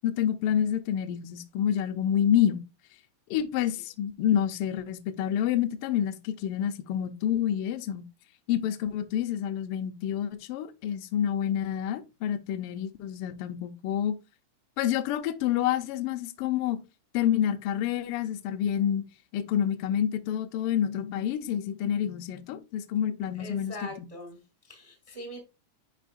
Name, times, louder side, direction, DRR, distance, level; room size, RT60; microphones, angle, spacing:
voice 1, 0.0-2.6 3.3-8.0 8.5-14.2 14.8-16.8 17.1-19.1 19.3-23.7, left 10 dB, 90° left, 1.2 m, -28 dB
voice 2, 23.3-25.4, left 1 dB, 20° right, 0.8 m, -42 dB
10.0 x 4.1 x 2.5 m
omnidirectional pair, 3.5 m